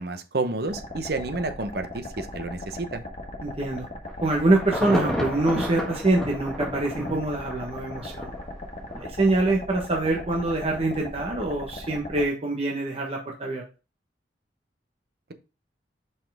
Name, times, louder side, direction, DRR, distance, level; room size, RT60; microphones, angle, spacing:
voice 1, 0.0-3.0, right 2 dB, 60° right, 9 dB, 0.9 m, -30 dB
sound 1, 0.7-12.2, left 1 dB, 40° left, 1.5 m, -38 dB
voice 2, 3.4-3.9 4.2-8.3 9.0-13.6, right 2 dB, 35° right, 0 dB, 1.1 m, -25 dB
Insect / Thunder / Rain, 4.1-8.4 8.9-9.0, equal, 5° left, 1.6 m, -31 dB
5.6 x 5.6 x 3.5 m, 0.31 s
head